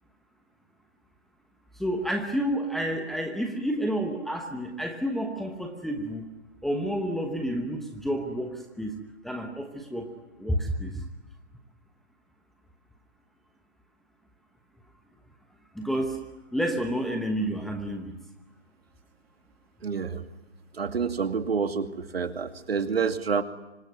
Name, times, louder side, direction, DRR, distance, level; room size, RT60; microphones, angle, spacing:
voice 1, 1.8-6.3 6.6-8.9 9.2-10.1 10.4-11.0 15.7-16.2 16.5-18.1, equal, ahead, 2 dB, 1.1 m, -30 dB
voice 2, 19.8-20.2 20.7-23.4, right 5 dB, 65° right, 8 dB, 2.5 m, -28 dB
25.5 x 23.5 x 9.5 m, 0.98 s
hypercardioid pair, 155°, 32 cm